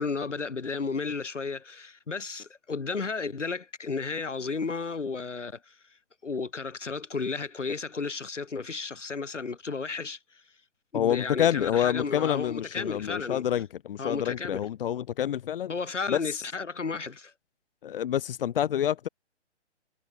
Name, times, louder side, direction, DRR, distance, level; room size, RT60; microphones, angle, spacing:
voice 1, 0.0-5.8 6.2-10.2 10.9-13.6 14.0-14.7 15.7-17.3, left 4 dB, 85° left, 5.2 m, -33 dB
voice 2, 10.9-15.7 16.1-16.2 17.8-19.1, left 10 dB, 50° left, 2.6 m, -27 dB
hypercardioid pair, 140°, 36 cm